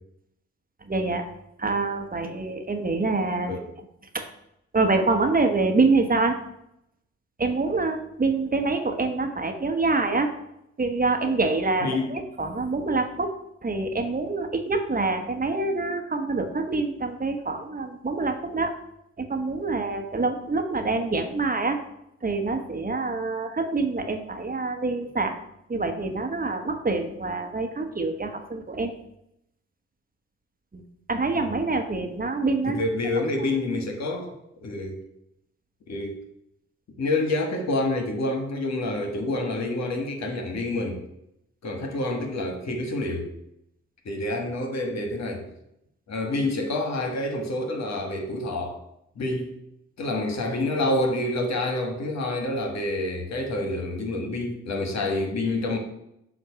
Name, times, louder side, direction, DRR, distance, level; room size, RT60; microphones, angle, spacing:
voice 1, 0.8-1.3 1.6-3.5 4.1-4.2 4.7-6.4 7.4-10.3 10.8-13.3 13.6-18.7 19.2-21.8 22.2-25.3 25.7-28.9 30.7-30.8 31.1-32.8 33.1-33.2, right 3 dB, 30° right, 5 dB, 1.0 m, -26 dB
voice 2, 32.7-34.3 34.6-35.0 35.9-36.2 37.0-41.0 41.6-43.3 44.0-45.5 46.1-48.8 49.2-49.5 50.0-55.8, left 2 dB, 65° left, 3 dB, 1.4 m, -27 dB
7.7 x 2.6 x 5.7 m, 0.79 s
hypercardioid pair, 40°, 29 cm